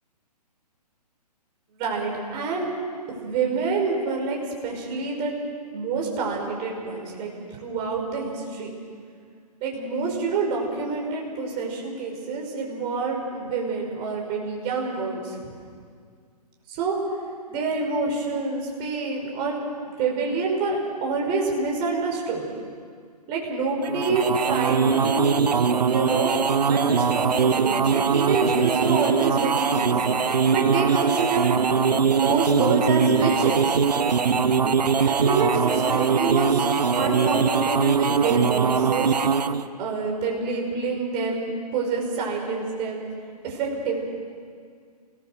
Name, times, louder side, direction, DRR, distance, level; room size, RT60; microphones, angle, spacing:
voice 1, 1.7-2.7 3.1-4.4 4.6-5.3 5.7-7.3 7.6-8.7 9.6-15.5 16.7-17.0 17.5-19.6 20.0-22.5 23.3-25.3 25.8-30.0 30.5-31.6 31.9-33.7 35.1-39.1 39.8-43.0 43.4-43.9, right 4 dB, 25° right, -1 dB, 5.4 m, -27 dB
sound 1, 23.8-39.7, right 6 dB, 75° right, 1.0 m, -21 dB
27.5 x 19.0 x 6.4 m, 2.1 s
figure-of-eight pair, 135°, 21 cm